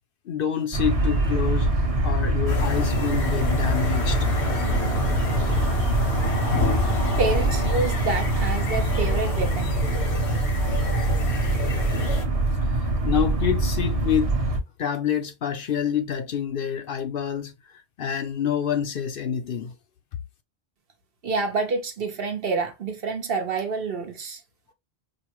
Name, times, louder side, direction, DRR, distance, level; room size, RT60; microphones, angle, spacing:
voice 1, 0.3-1.7 2.0-4.3 12.7-14.4 14.8-19.8, left 8 dB, 60° left, 0.8 m, -27 dB
sound 1, 0.7-14.6, right 2 dB, 35° right, 1.0 m, -24 dB
sound 2, 2.5-12.3, left 4 dB, 75° left, 1.3 m, -30 dB
voice 2, 7.2-9.8 21.2-24.4, right 3 dB, 60° right, 1.1 m, -27 dB
5.2 x 2.1 x 3.0 m
omnidirectional pair, 1.1 m